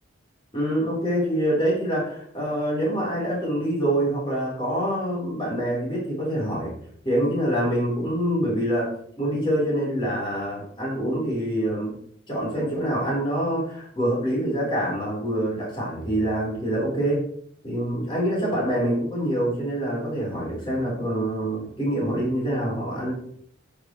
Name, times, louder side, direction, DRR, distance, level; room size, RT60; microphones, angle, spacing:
voice 1, 0.5-6.7 7.0-11.9 12.3-17.3 17.6-23.1, right 1 dB, 25° left, -5 dB, 3.9 m, -25 dB
10.0 x 8.6 x 3.1 m, 0.66 s
head